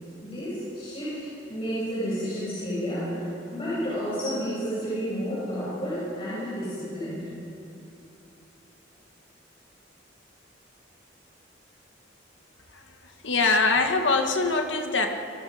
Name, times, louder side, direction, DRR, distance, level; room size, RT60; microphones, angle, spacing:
voice 1, 0.2-7.3, equal, 30° left, -10 dB, 7.5 m, -31 dB
voice 2, 12.7-15.1, left 3 dB, 85° left, 4 dB, 2.0 m, -24 dB
26.0 x 23.0 x 5.2 m, 2.7 s
head